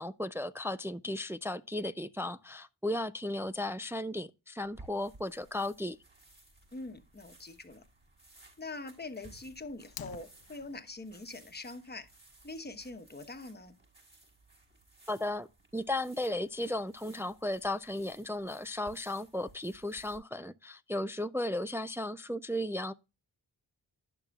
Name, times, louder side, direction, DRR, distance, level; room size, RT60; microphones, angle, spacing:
voice 1, 0.0-6.0 15.1-15.5 15.7-22.9, left 1 dB, 5° right, 0.3 m, -35 dB
sound 1, 4.6-20.2, right 2 dB, 25° right, 5.2 m, -59 dB
voice 2, 6.7-7.8 8.6-12.1 12.4-13.7, left 2 dB, 25° left, 1.2 m, -44 dB
Fire, 9.8-10.8, left 9 dB, 65° left, 0.7 m, -47 dB
10.5 x 6.8 x 2.4 m
wide cardioid pair, 80°, 39 cm